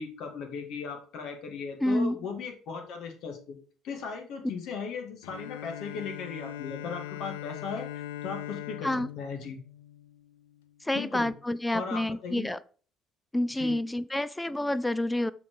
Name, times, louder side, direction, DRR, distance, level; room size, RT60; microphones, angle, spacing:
voice 1, 0.0-3.6 3.8-7.9 8.2-8.9 9.2-9.6 10.9-11.3 11.7-12.5 13.5-13.7, left 5 dB, 65° left, 2.1 m, -37 dB
voice 2, 1.8-2.2 8.8-9.1 10.8-12.6 13.3-15.3, left 1 dB, 10° left, 0.5 m, -28 dB
Bowed string instrument, 5.2-10.7, left 12 dB, 90° left, 0.4 m, -41 dB
7.0 x 4.5 x 4.9 m
hypercardioid pair, 65°, 0 cm